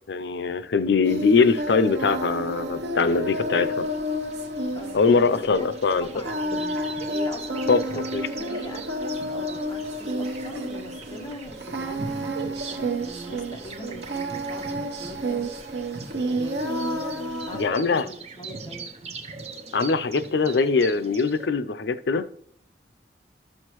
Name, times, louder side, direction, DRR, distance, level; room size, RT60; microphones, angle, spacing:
voice 1, 0.1-3.9 4.9-6.1 7.7-8.2 17.5-18.1 19.7-22.3, left 4 dB, 70° left, 13 dB, 0.5 m, -22 dB
Singing, 1.0-17.7, right 1 dB, 70° right, 1.2 m, -30 dB
sound 1, 2.9-21.5, right 3 dB, 35° right, 0.8 m, -42 dB
voice 2, 4.7-5.7 6.0-7.7 8.3-14.6 15.0-15.5 16.3-19.2, left 1 dB, 20° left, 2 dB, 1.1 m, -42 dB
12.5 x 6.4 x 3.0 m, 0.64 s
head